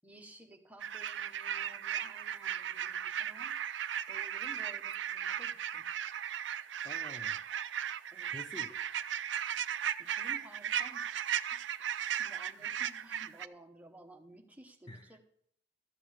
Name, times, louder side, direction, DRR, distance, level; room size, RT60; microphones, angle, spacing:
voice 1, 0.0-3.6 4.1-5.9 8.1-8.4 10.0-11.2 12.2-15.2, right 1 dB, 10° right, 1.1 m, -55 dB
sound 1, 0.8-13.5, right 9 dB, 90° right, 0.5 m, -36 dB
voice 2, 6.8-7.5 8.3-8.8 14.9-15.2, left 1 dB, 25° left, 0.7 m, -48 dB
13.5 x 7.7 x 5.0 m
head